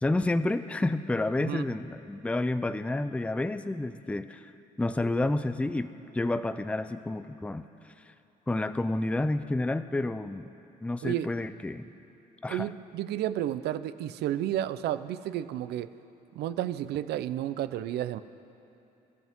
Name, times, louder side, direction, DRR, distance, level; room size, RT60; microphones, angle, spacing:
voice 1, 0.0-4.4 4.8-5.9 6.1-7.6 8.5-10.5 10.8-11.9 12.4-12.7, left 2 dB, 5° left, 10 dB, 0.5 m, -29 dB
voice 2, 12.5-15.9 16.3-18.2, right 12 dB, 75° right, 13 dB, 0.6 m, -31 dB
29.0 x 13.5 x 3.6 m, 2.9 s
cardioid pair, 110°, 17 cm